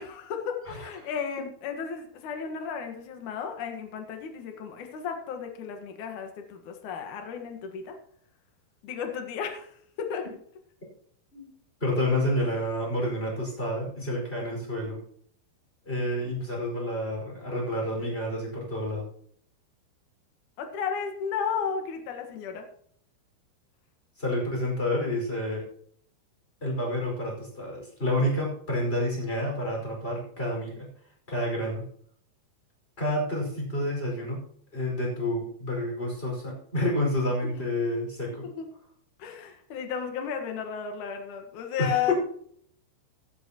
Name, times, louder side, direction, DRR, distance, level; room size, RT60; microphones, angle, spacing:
voice 1, 0.0-8.0 8.8-9.7 10.0-10.2 12.4-12.5 20.6-22.7 37.4-37.6 38.4-38.7 39.2-42.1, left 7 dB, 60° left, 4 dB, 2.2 m, -33 dB
voice 2, 11.8-15.0 15.8-19.0 24.2-25.6 26.6-30.9 31.3-31.8 33.0-34.5 34.7-38.5 41.8-42.1, left 1 dB, 10° left, -1 dB, 5.0 m, -29 dB
16.5 x 11.5 x 3.0 m, 0.63 s
omnidirectional pair, 5.5 m